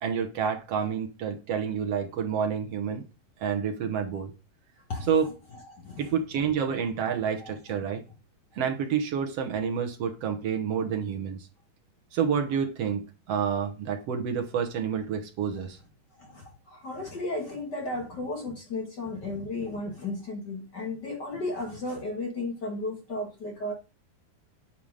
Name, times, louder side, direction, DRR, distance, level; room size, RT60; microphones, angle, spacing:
voice 1, 0.0-3.0 3.4-4.3 5.1-5.3 6.0-8.0 8.5-11.5 12.1-15.8, right 7 dB, 70° right, 1.4 m, -29 dB
voice 2, 5.7-6.1 7.4-7.5 16.2-23.7, left 2 dB, 50° left, 1.3 m, -34 dB
8.9 x 5.7 x 4.9 m
omnidirectional pair, 4.3 m